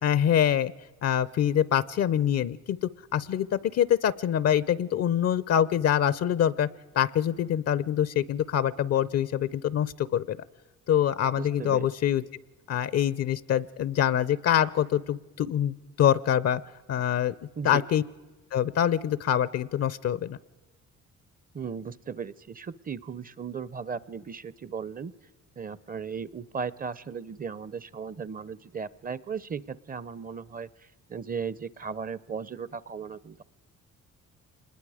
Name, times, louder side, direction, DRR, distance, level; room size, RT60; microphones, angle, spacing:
voice 1, 0.0-0.7 1.0-6.7 6.9-10.4 10.9-12.2 12.7-16.6 16.9-17.3 17.6-18.0 18.5-20.4, left 10 dB, 55° left, 19 dB, 0.5 m, -25 dB
voice 2, 11.4-11.9 17.6-17.8 21.5-25.1 25.6-30.7 31.1-33.4, right 6 dB, 30° right, 19 dB, 0.6 m, -36 dB
25.5 x 21.0 x 4.9 m, 1.3 s
cardioid pair, 90°, 30 cm